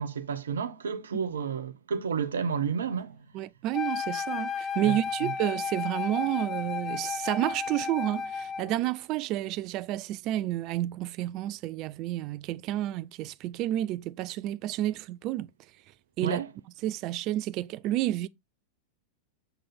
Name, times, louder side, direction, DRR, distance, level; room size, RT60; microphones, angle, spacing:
voice 1, 0.0-3.3 4.8-5.0 5.2-5.3 16.2-16.5, right 6 dB, 65° right, 0.7 m, -31 dB
voice 2, 3.3-15.5 16.2-16.4 16.8-18.3, right 14 dB, 40° right, 0.4 m, -30 dB
Wind instrument woodwind instrument, 3.7-8.8, left 6 dB, 20° left, 0.7 m, -33 dB
6.7 x 3.8 x 4.2 m
figure-of-eight pair, 90°, 0 cm